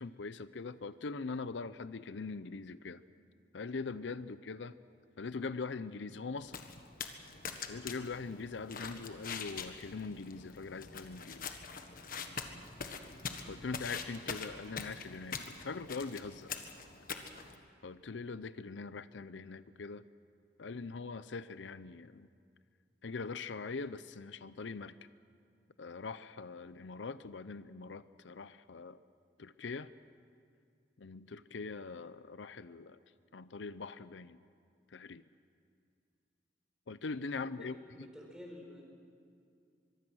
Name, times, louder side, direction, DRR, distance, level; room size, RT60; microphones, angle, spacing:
voice 1, 0.0-3.0 3.5-4.8 5.2-6.6 7.7-11.6 13.5-16.5 17.8-20.0 20.6-22.3 23.0-25.0 25.8-29.0 29.4-29.9 31.0-33.0 33.3-34.4 34.9-35.2 36.9-38.1, left 4 dB, 85° left, 14 dB, 0.6 m, -42 dB
sound 1, 6.4-17.6, left 5 dB, 50° left, 1.5 m, -44 dB
voice 2, 37.3-38.8, left 1 dB, 5° right, -1 dB, 4.6 m, -51 dB
24.0 x 23.0 x 6.3 m, 2.4 s
head